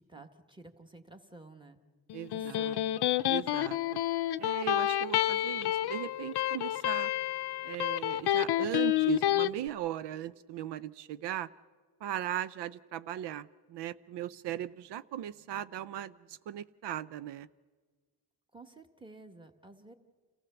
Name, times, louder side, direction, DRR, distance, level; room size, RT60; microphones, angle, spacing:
voice 1, 0.0-1.8 2.3-3.0 18.5-19.9, right 2 dB, 10° right, 6 dB, 1.6 m, -52 dB
Electric guitar, 2.1-9.5, left 13 dB, 70° left, 0.6 m, -29 dB
voice 2, 2.1-2.8 3.3-3.8 4.4-7.1 7.6-11.5 12.0-17.5, right 11 dB, 85° right, 16 dB, 0.6 m, -38 dB
28.0 x 15.0 x 7.0 m, 1.5 s
cardioid pair, 85°, 40 cm